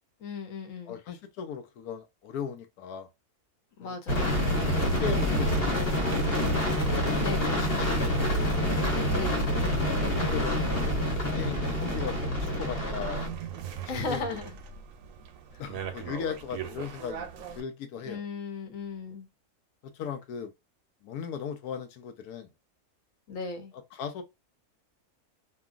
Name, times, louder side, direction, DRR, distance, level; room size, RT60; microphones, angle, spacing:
voice 1, 0.2-1.0 3.8-4.4 7.2-7.6 9.1-9.5 13.9-14.6 18.0-19.3 23.3-23.7, left 4 dB, 65° left, 1.2 m, -36 dB
voice 2, 0.9-3.1 3.8-4.3 4.8-6.6 7.5-8.5 9.8-13.3 13.9-14.4 15.6-17.3 17.6-18.2 19.9-20.5 21.0-22.5 23.9-24.2, left 7 dB, 85° left, 1.1 m, -38 dB
sound 1, 4.1-13.3, equal, 45° left, 1.1 m, -27 dB
sound 2, 4.3-17.6, right 3 dB, 70° right, 0.9 m, -38 dB
2.9 x 2.4 x 2.3 m
omnidirectional pair, 1.6 m